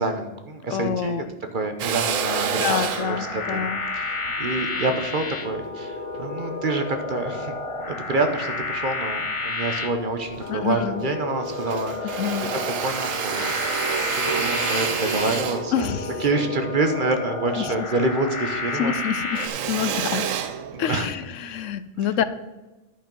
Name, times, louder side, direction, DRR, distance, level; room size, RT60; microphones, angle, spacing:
voice 1, 0.0-1.2 1.5-3.6 3.9-7.5 7.9-12.2 12.8-13.5 13.8-15.9 16.2-18.9 19.8-20.0 20.7-21.1, right 2 dB, 45° right, 6 dB, 1.0 m, -27 dB
voice 2, 0.7-1.3 2.5-3.8 10.5-11.0 12.0-12.5 15.7-16.1 17.6-17.7 18.7-20.3 20.8-22.2, left 8 dB, 75° left, 13 dB, 0.9 m, -27 dB
Drill, 1.8-6.3 6.9-8.1 8.5-9.5 9.8-9.9 10.2-11.2 11.4-18.1 18.4-21.3, right 8 dB, 85° right, 1.1 m, -30 dB
sound 1, 2.0-19.5, left 3 dB, 30° left, 0.7 m, -31 dB
11.5 x 5.4 x 5.3 m, 1.1 s
omnidirectional pair, 1.3 m